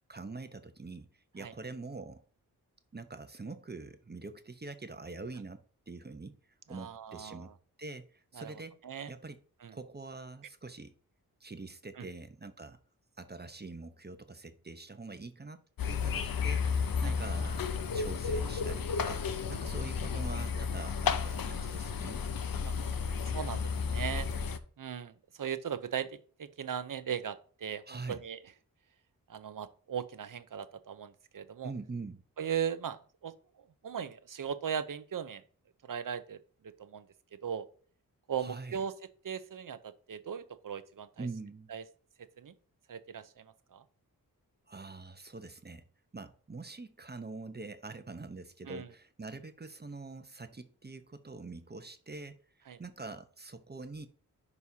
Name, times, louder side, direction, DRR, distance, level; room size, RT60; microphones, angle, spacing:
voice 1, 0.1-2.2 2.9-6.4 6.7-7.5 7.8-8.8 9.1-9.4 9.7-10.9 11.4-12.8 13.2-15.6 15.8-17.7 17.9-22.2 27.9-28.2 31.6-32.2 38.4-38.8 41.2-41.7 44.7-45.8 46.1-52.4 52.8-54.1, right 3 dB, 25° right, 9 dB, 0.9 m, -44 dB
voice 2, 6.7-7.5 8.3-9.1 9.6-9.7 12.0-12.1 17.0-17.2 19.5-19.6 22.6-22.7 23.3-24.3 24.8-28.4 29.3-31.7 32.4-33.3 33.8-35.4 35.8-37.1 37.4-37.7 38.3-38.9 39.2-41.3 41.7-41.8 42.2-42.5 42.9-43.8 48.7-48.9 52.7-52.8, right 8 dB, 60° right, 13 dB, 0.8 m, -38 dB
sound 1, 15.8-24.6, left 5 dB, 65° left, 0.8 m, -32 dB
9.5 x 5.5 x 2.8 m, 0.43 s
cardioid pair, 50°, 37 cm